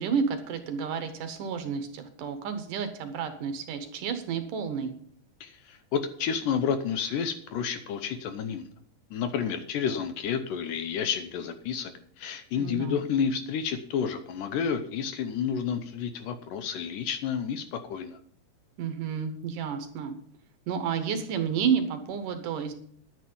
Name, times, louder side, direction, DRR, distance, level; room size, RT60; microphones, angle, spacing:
voice 1, 0.0-4.9 12.6-13.0 18.8-20.2 20.7-22.7, right 7 dB, 70° right, 8 dB, 2.4 m, -30 dB
voice 2, 5.4-8.7 9.1-11.9 12.2-18.2, left 7 dB, 75° left, 9 dB, 2.1 m, -30 dB
11.0 x 9.1 x 5.4 m, 0.62 s
omnidirectional pair, 4.3 m